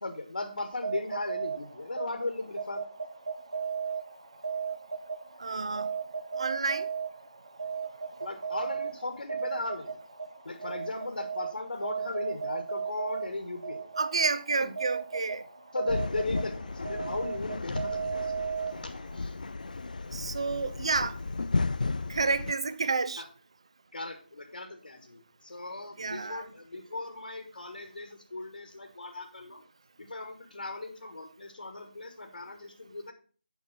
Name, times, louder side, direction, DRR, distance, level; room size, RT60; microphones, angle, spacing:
voice 1, 0.0-2.8 8.2-9.9 10.4-13.8 14.6-14.7 15.7-18.3 18.8-19.3 23.2-23.3 23.9-29.6 30.0-33.1, left 2 dB, 70° left, 1.6 m, -37 dB
sound 1, 0.7-19.2, right 6 dB, 55° right, 3.0 m, -36 dB
voice 2, 5.4-5.9 6.4-6.9 14.0-15.4 20.1-21.2 22.1-23.2 26.0-26.5, right 4 dB, 35° right, 0.4 m, -30 dB
sound 2, 15.9-22.5, left 3 dB, 50° left, 0.4 m, -34 dB
8.7 x 5.4 x 5.8 m
figure-of-eight pair, 175°, 5 cm